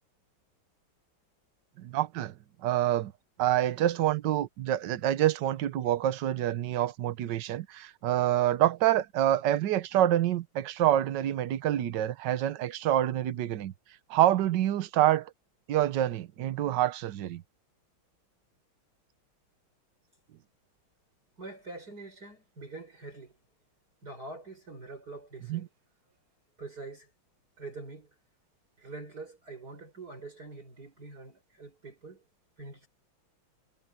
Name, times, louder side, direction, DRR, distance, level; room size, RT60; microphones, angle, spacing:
voice 1, 1.8-2.3 2.6-3.1 3.4-13.7 14.1-15.3 15.7-17.4 25.5-25.6, right 12 dB, 65° right, 1.5 m, -27 dB
voice 2, 21.4-23.3 24.0-25.7 26.6-27.1 27.6-28.1 28.8-32.2 32.6-32.9, right 3 dB, 45° right, 7.3 m, -44 dB
omnidirectional pair, 2.2 m